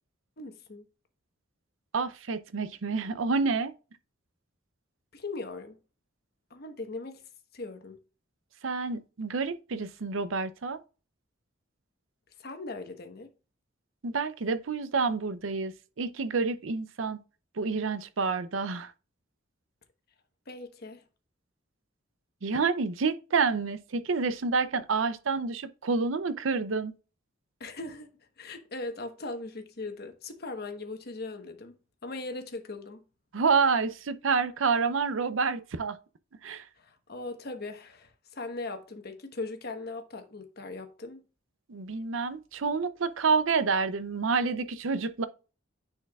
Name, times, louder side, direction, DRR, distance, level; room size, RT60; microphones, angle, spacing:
voice 1, 0.4-0.8 5.1-5.8 6.5-7.2 7.5-8.0 12.4-13.3 20.5-21.0 27.6-28.1 28.4-31.8 32.0-33.0 36.8-41.2, left 3 dB, 50° left, 1.1 m, -39 dB
voice 2, 1.9-3.7 8.6-10.8 14.0-17.2 17.6-18.9 22.4-26.9 33.3-36.0 36.4-36.7 41.7-45.3, right 4 dB, 75° right, 0.6 m, -28 dB
9.6 x 4.5 x 2.3 m
head